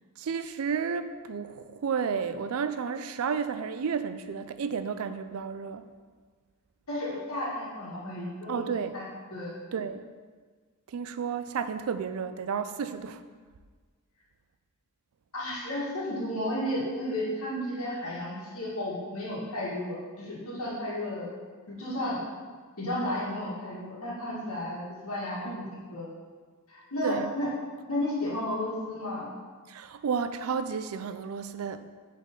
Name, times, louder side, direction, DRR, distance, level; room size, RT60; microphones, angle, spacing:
voice 1, 0.2-5.9 8.5-9.0 9.7-10.1 10.9-13.2 25.5-25.7 27.0-27.3 29.7-31.9, right 6 dB, 80° right, 11 dB, 0.4 m, -32 dB
voice 2, 6.9-8.7 8.9-9.0 9.3-9.5 15.3-21.3 21.7-22.2 22.8-26.1 26.7-27.5 27.9-29.3, left 1 dB, 80° left, -7 dB, 1.8 m, -33 dB
8.4 x 4.2 x 3.7 m, 1.5 s
head